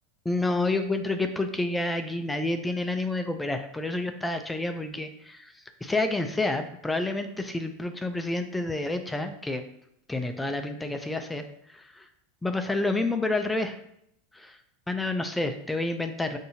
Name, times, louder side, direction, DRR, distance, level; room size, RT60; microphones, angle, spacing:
voice 1, 0.3-5.5 5.8-9.6 10.1-11.4 11.7-12.1 12.4-13.8 14.3-14.6 14.9-16.4, left 2 dB, 10° left, 7 dB, 0.4 m, -29 dB
5.5 x 2.6 x 2.7 m, 0.74 s
hypercardioid pair, 110°, 0 cm